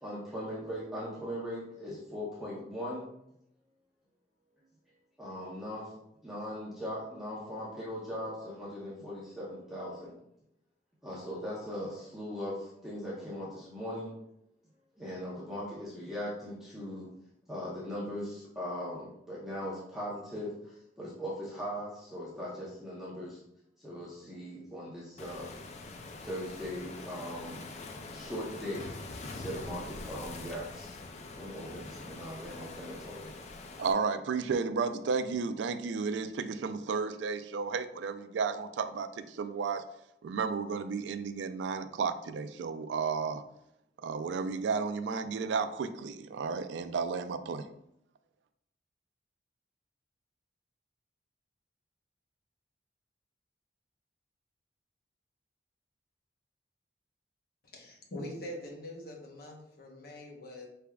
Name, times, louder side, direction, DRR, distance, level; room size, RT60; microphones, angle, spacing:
voice 1, 0.0-3.0 5.2-5.9 6.2-10.1 11.0-14.1 15.0-17.1 17.5-23.4 23.8-25.5 26.2-27.7 28.1-28.9 29.3-31.0 31.4-33.3, equal, ahead, -8 dB, 0.7 m, -39 dB
Waves surf, 25.2-33.9, left 3 dB, 40° left, 0.4 m, -44 dB
voice 2, 33.8-39.8 40.2-43.4 44.0-47.7, right 5 dB, 85° right, 10 dB, 0.3 m, -33 dB
voice 3, 57.7-60.7, left 1 dB, 60° left, 0 dB, 0.9 m, -43 dB
4.9 x 3.4 x 2.3 m, 0.79 s
head